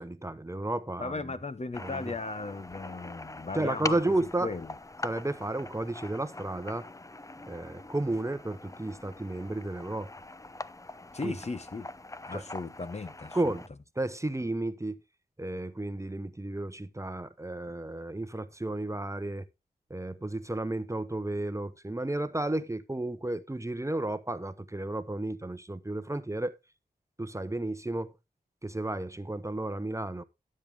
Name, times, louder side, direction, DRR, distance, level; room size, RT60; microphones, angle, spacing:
voice 1, 0.0-1.1 1.8-2.1 3.5-4.5 5.0-6.9 7.5-10.1 11.2-11.3 12.3-12.4 13.3-13.6 14.0-14.9 15.4-19.4 19.9-26.6 27.2-28.1 28.6-30.2, right 2 dB, 20° right, 0.9 m, -32 dB
voice 2, 1.0-4.0 4.4-4.7 11.1-11.9 12.3-13.5, left 3 dB, 40° left, 1.0 m, -36 dB
sound 1, 1.7-13.7, left 2 dB, 20° left, 0.6 m, -43 dB
12.0 x 7.6 x 3.5 m
cardioid pair, 40°, 17 cm